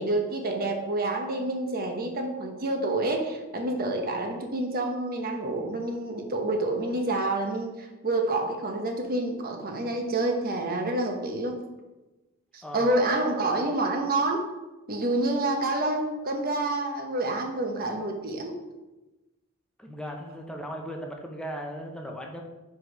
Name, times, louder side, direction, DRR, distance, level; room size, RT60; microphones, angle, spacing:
voice 1, 0.0-11.6 12.5-14.5 14.9-18.5, right 2 dB, 45° right, 3 dB, 0.9 m, -28 dB
voice 2, 19.8-22.4, equal, 5° left, 1 dB, 0.7 m, -37 dB
4.9 x 4.6 x 4.6 m, 1.1 s
head